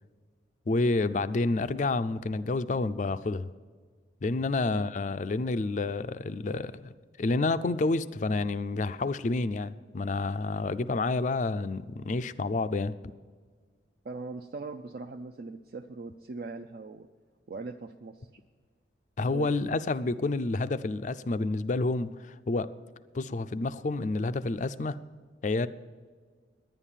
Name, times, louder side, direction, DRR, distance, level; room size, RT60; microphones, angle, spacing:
voice 1, 0.7-3.5 4.2-6.9 7.2-12.9 19.2-22.7 23.1-25.0 25.4-25.7, left 3 dB, 40° left, 13 dB, 0.4 m, -29 dB
voice 2, 14.0-17.1 17.5-18.3 19.3-19.5, right 3 dB, 50° right, 4 dB, 0.4 m, -40 dB
10.5 x 10.0 x 7.3 m, 1.5 s
head